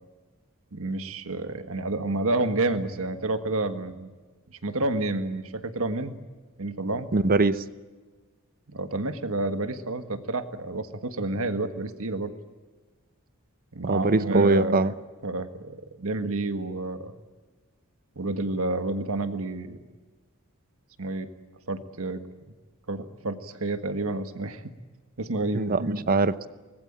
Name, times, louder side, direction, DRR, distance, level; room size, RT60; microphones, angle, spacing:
voice 1, 0.7-4.1 4.6-6.2 6.6-7.1 8.7-12.3 13.7-14.9 15.2-17.1 18.1-19.8 21.0-21.3 21.7-22.2 22.9-24.7 25.2-26.0, right 2 dB, 70° right, 9 dB, 1.7 m, -29 dB
voice 2, 7.1-7.6 13.8-14.9 25.5-26.5, right 3 dB, 40° right, 15 dB, 0.9 m, -22 dB
25.0 x 20.0 x 8.8 m, 1.3 s
head